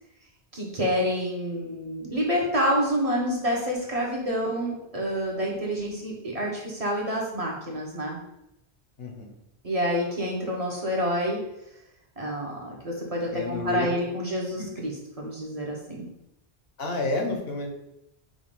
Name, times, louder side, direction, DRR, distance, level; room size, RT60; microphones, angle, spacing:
voice 1, 0.5-8.2 9.6-11.4 12.2-16.1, equal, 40° right, -2 dB, 0.8 m, -28 dB
voice 2, 13.3-13.9 14.6-14.7 16.8-17.7, left 3 dB, 70° left, 2 dB, 1.0 m, -29 dB
5.0 x 2.3 x 3.6 m, 0.83 s
omnidirectional pair, 1.0 m